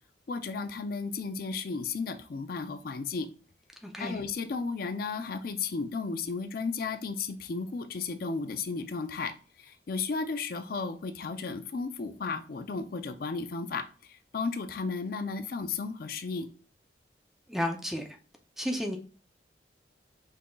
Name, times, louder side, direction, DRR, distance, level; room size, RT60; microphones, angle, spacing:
voice 1, 0.3-3.3 4.0-16.5, left 4 dB, 55° left, 0.4 m, -34 dB
voice 2, 3.8-4.2 17.5-18.1 18.6-19.0, equal, ahead, 0.5 m, -32 dB
5.4 x 3.7 x 2.2 m
head